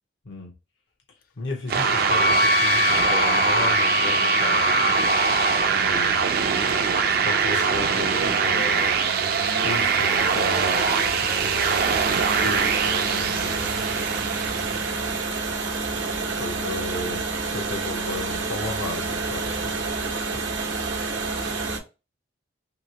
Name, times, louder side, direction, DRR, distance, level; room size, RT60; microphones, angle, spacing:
voice 1, 0.2-0.5 1.4-4.7 5.7-6.2 7.1-9.0 9.6-14.0 16.3-20.4, left 3 dB, 80° left, 0.8 m, -35 dB
sound 1, 1.7-15.4, right 6 dB, 55° right, 0.4 m, -23 dB
Wind instrument woodwind instrument, 2.1-5.7, left 3 dB, 50° left, 0.4 m, -23 dB
sound 2, 5.4-21.8, right 3 dB, 85° right, 0.8 m, -29 dB
2.9 x 2.7 x 2.8 m
head